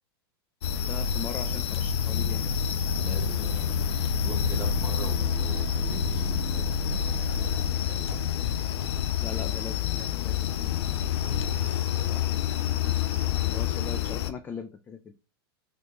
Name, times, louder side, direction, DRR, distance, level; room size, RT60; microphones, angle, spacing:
sound 1, 0.6-14.3, left 8 dB, 80° left, 0.4 m, -28 dB
voice 1, 0.9-2.5 9.2-10.5 13.5-15.1, left 6 dB, 15° left, 0.3 m, -39 dB
voice 2, 3.0-8.4 11.5-12.2, equal, 10° right, 1.5 m, -41 dB
3.3 x 2.6 x 3.1 m
hypercardioid pair, 125°, 13 cm